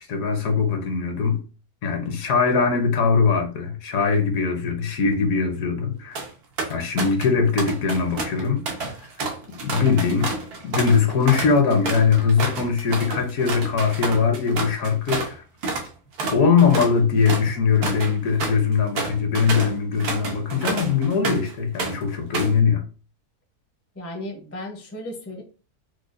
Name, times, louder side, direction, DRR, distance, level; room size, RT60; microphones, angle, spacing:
voice 1, 0.1-1.4 1.8-6.2 6.7-8.6 9.6-10.3 10.6-15.4 16.3-22.9, left 5 dB, 70° left, 1.1 m, -21 dB
Om-FR-pencilcase-concert, 5.9-6.3 6.6-7.3 7.6-15.3 15.6-15.9 16.2-21.5 21.8-22.6, right 3 dB, 85° right, 1.4 m, -29 dB
voice 2, 24.0-25.4, left 1 dB, 20° left, 0.4 m, -35 dB
4.6 x 2.2 x 2.5 m
omnidirectional pair, 1.6 m